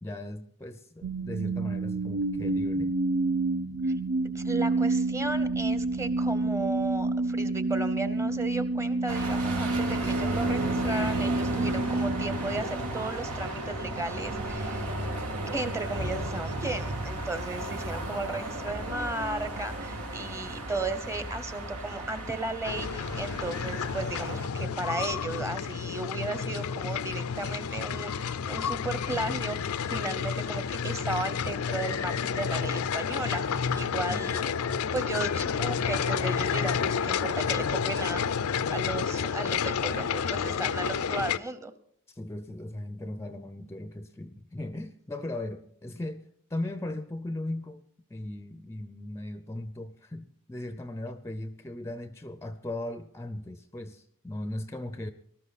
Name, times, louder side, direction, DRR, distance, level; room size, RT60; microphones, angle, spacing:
voice 1, 0.0-3.0 34.1-34.3 42.1-47.8 48.1-55.1, left 1 dB, 10° left, 11 dB, 0.6 m, -38 dB
sound 1, 1.0-13.2, right 2 dB, 70° right, 0.9 m, -29 dB
voice 2, 4.3-14.9 15.5-34.5 34.9-41.7, right 2 dB, 15° right, 11 dB, 0.9 m, -35 dB
sound 2, 9.1-24.5, right 1 dB, 90° right, 3.0 m, -34 dB
sound 3, 22.6-41.4, left 6 dB, 70° left, 0.5 m, -30 dB
19.5 x 13.0 x 4.1 m, 0.67 s
head